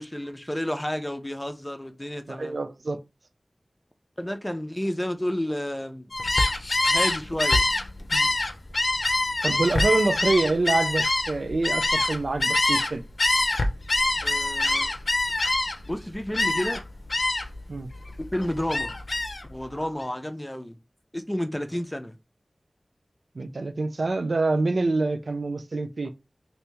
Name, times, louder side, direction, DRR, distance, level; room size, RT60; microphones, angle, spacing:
voice 1, 0.0-2.6 4.2-6.1 6.9-7.6 14.2-14.9 15.8-16.8 18.3-18.9 19.5-20.8 21.1-22.2, left 1 dB, 15° left, 0.6 m, -31 dB
voice 2, 2.3-3.0 8.1-8.3 9.4-13.0 17.7-17.9 23.4-26.1, right 3 dB, 85° right, 0.4 m, -26 dB
Gull seagull, 6.1-12.9 13.2-15.9 16.3-16.8 17.1-17.6 18.0-19.4, left 2 dB, 65° left, 0.6 m, -24 dB
2.9 x 2.7 x 3.3 m
wide cardioid pair, 55°, 0 cm